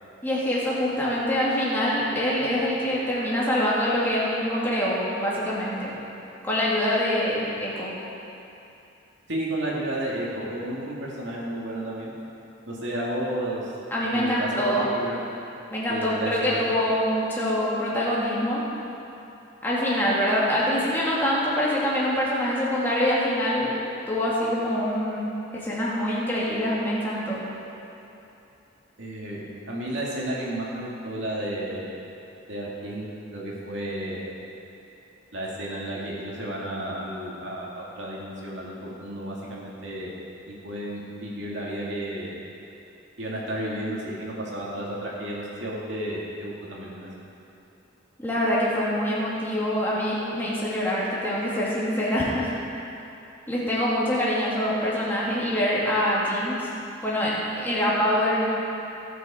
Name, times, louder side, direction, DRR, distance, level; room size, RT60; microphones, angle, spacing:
voice 1, 0.2-5.9 6.4-7.9 13.9-14.9 15.7-18.6 19.6-23.7 24.1-27.4 48.2-52.5 53.5-56.7 57.0-58.5, equal, 10° left, -7 dB, 2.4 m, -25 dB
voice 2, 9.3-12.1 12.6-13.7 14.1-15.2 15.9-16.7 29.0-31.9 32.5-34.2 35.3-40.1 40.5-42.4 43.2-47.1, right 1 dB, 65° right, -5 dB, 2.5 m, -32 dB
18.5 x 6.8 x 4.4 m, 2.8 s
head